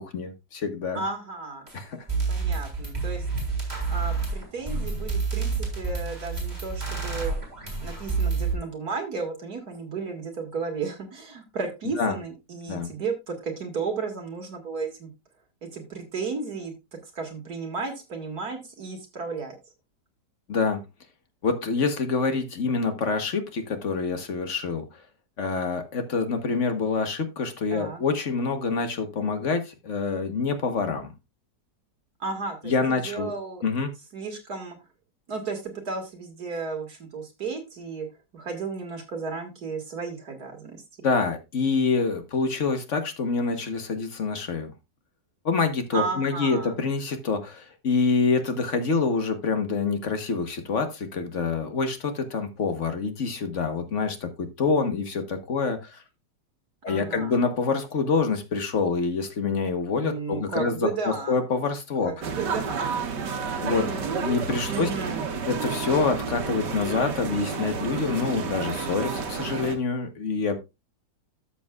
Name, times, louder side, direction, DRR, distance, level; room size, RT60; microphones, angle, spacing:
voice 1, 0.0-1.0 1.7-2.0 12.0-12.2 12.7-12.9 20.5-20.8 21.4-24.8 25.4-31.1 32.6-33.3 33.6-33.9 41.0-44.7 45.4-56.0 56.8-62.1 63.6-63.9 64.2-64.9 65.5-70.6, left 4 dB, 45° left, 7 dB, 1.5 m, -26 dB
voice 2, 0.9-1.7 2.3-3.3 3.9-7.4 7.8-15.1 15.7-16.7 17.1-19.6 27.7-28.0 32.2-33.6 34.1-34.8 35.3-38.1 38.3-40.8 45.9-46.7 56.9-57.4 60.0-61.4 62.0-63.3 63.5-64.3 64.7-65.3, right 4 dB, 60° right, 3 dB, 2.6 m, -34 dB
sound 1, 1.7-1.8 2.1-8.5, right 4 dB, 25° right, 3.4 m, -28 dB
sound 2, 62.2-69.8, right 5 dB, 80° right, 1.9 m, -30 dB
13.0 x 7.1 x 2.4 m, 0.24 s
omnidirectional pair, 1.8 m